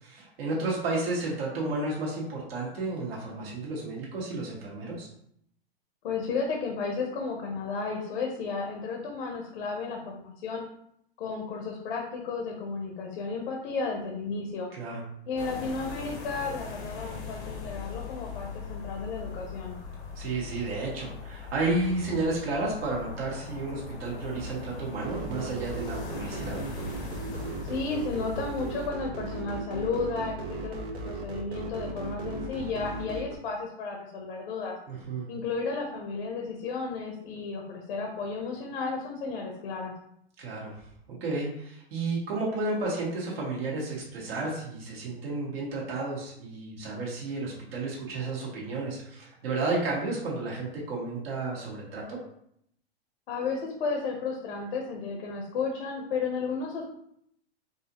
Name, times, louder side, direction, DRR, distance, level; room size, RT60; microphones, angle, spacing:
voice 1, 0.0-5.1 14.7-15.0 20.1-26.6 34.9-35.3 40.4-40.7 41.1-52.2, right 2 dB, 65° right, -4 dB, 1.6 m, -32 dB
voice 2, 6.0-10.6 11.2-14.7 15.3-19.8 27.6-34.7 35.3-39.9 53.3-56.8, left 4 dB, 60° left, 1 dB, 0.9 m, -33 dB
sound 1, 15.4-28.9, left 4 dB, 85° left, 1.2 m, -40 dB
sound 2, 25.0-33.3, right 3 dB, 15° right, 0.3 m, -37 dB
4.7 x 2.7 x 2.9 m, 0.71 s
hypercardioid pair, 130°, 32 cm